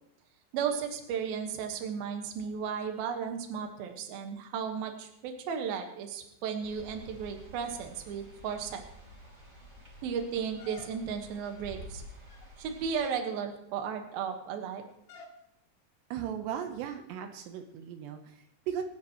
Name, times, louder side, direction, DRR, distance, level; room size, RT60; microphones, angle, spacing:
voice 1, 0.5-8.8 10.0-12.0 12.6-14.8, right 7 dB, 70° right, 4 dB, 3.1 m, -35 dB
sound 1, 6.6-12.9, equal, 20° right, 3.2 m, -50 dB
sound 2, 10.6-11.3 12.1-12.6 12.9-13.3 15.1-15.4, left 7 dB, 65° left, 3.2 m, -49 dB
voice 2, 16.1-18.8, right 9 dB, 85° right, 6 dB, 3.1 m, -37 dB
26.0 x 9.5 x 3.0 m, 0.78 s
omnidirectional pair, 4.8 m